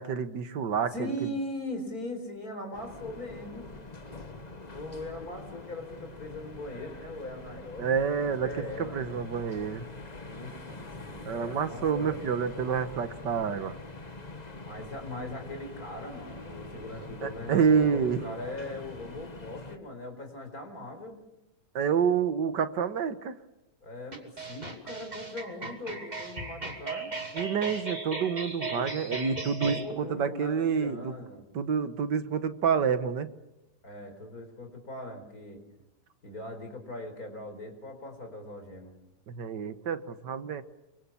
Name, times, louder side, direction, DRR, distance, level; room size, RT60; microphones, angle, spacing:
voice 1, 0.0-1.1 7.8-9.9 11.3-13.7 17.2-18.3 21.8-23.4 27.3-31.1 31.5-33.3 39.3-40.6, right 6 dB, 80° right, 11 dB, 1.9 m, -28 dB
voice 2, 0.9-3.7 4.7-9.0 10.1-12.4 14.6-21.2 23.8-27.1 29.7-31.5 33.8-35.6 36.2-38.9, left 1 dB, 55° left, 6 dB, 5.1 m, -40 dB
sound 1, 2.7-19.8, left 2 dB, 25° left, 1.6 m, -44 dB
sound 2, 24.1-29.8, right 3 dB, 25° right, 2.8 m, -37 dB
25.0 x 24.5 x 7.2 m, 0.95 s
omnidirectional pair, 1.9 m